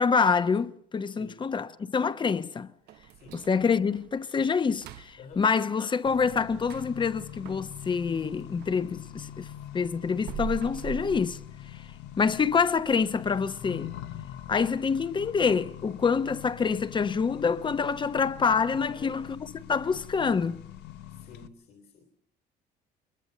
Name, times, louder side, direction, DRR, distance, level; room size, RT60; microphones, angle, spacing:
voice 1, 0.0-2.7 3.3-9.5 9.7-11.4 12.2-13.9 14.5-20.6, left 5 dB, 30° left, 0.9 m, -26 dB
voice 2, 1.1-1.5 3.1-3.5 5.2-5.5 18.5-19.2 21.1-22.1, left 5 dB, 60° left, 3.3 m, -49 dB
sound 1, 2.9-8.8 9.2-12.0 12.4-12.5 13.0-13.1 13.6-13.9 14.2-14.3 14.9-15.0, right 9 dB, 80° right, 0.8 m, -44 dB
Accelerating revving vroom, 6.0-21.5, left 11 dB, 85° left, 1.1 m, -44 dB
22.5 x 21.5 x 6.7 m
cardioid pair, 110°, 17 cm